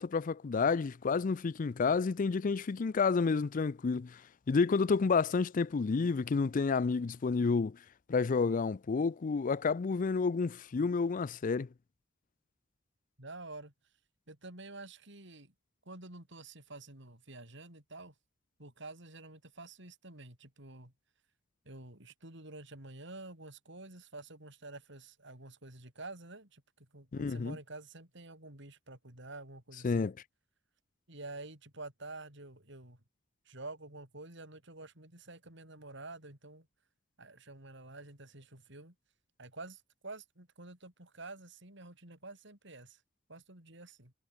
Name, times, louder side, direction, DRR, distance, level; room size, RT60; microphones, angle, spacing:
voice 1, 0.0-4.2 4.5-7.8 8.1-11.7 27.1-27.6 29.8-30.1, left 4 dB, 45° left, 0.4 m, -30 dB
voice 2, 13.2-13.7 14.3-15.5 15.8-18.1 18.6-20.9 21.6-30.1 31.1-33.0 33.4-36.7 37.2-38.9 39.4-43.0 43.3-44.1, right 2 dB, 65° right, 6.6 m, -49 dB
head